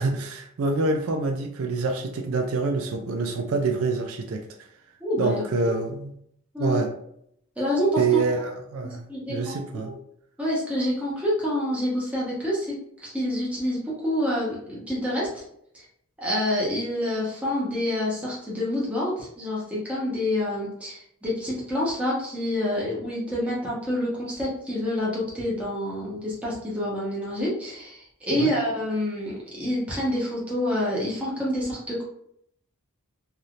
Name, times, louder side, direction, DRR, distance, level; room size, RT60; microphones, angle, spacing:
voice 1, 0.0-4.7 5.2-6.1 6.6-6.9 8.0-9.0 9.3-9.9 28.4-28.5, right 3 dB, 65° right, 3 dB, 0.4 m, -26 dB
voice 2, 5.0-5.7 6.5-6.8 7.6-8.2 8.8-9.5 9.8-9.9 10.4-15.4 16.2-32.0, left 1 dB, 5° right, -7 dB, 1.0 m, -27 dB
3.3 x 2.7 x 2.4 m, 0.72 s
head